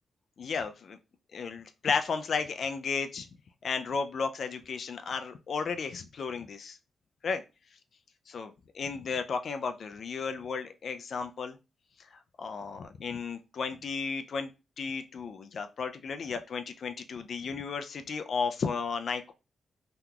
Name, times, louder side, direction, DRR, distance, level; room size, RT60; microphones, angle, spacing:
voice 1, 0.4-1.0 1.3-3.3 3.6-6.8 7.2-7.4 8.3-11.6 12.0-14.5 14.8-19.3, left 5 dB, 55° left, 8 dB, 0.3 m, -34 dB
2.8 x 2.3 x 3.6 m, 0.28 s
wide cardioid pair, 130°, 0 cm